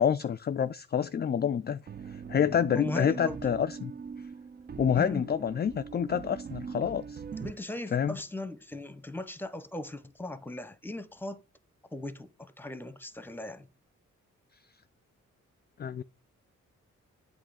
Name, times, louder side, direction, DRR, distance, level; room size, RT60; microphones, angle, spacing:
voice 1, 0.0-1.8 2.3-3.9 4.8-7.2 7.9-8.2 15.8-16.0, left 8 dB, 35° left, 0.4 m, -27 dB
sound 1, 1.9-7.5, right 6 dB, 30° right, 0.4 m, -41 dB
voice 2, 2.7-3.4 5.0-5.2 7.4-11.4 11.9-13.7, left 2 dB, 5° left, 0.9 m, -38 dB
7.9 x 3.2 x 6.4 m
cardioid pair, 60°, 30 cm